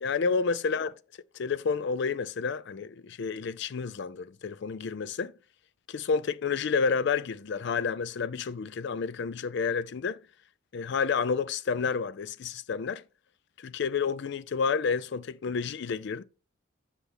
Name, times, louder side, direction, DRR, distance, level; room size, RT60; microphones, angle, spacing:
voice 1, 0.0-0.9 1.3-5.3 5.9-10.2 10.7-13.0 13.6-16.2, left 5 dB, 60° left, 0.4 m, -30 dB
8.0 x 5.7 x 3.4 m
head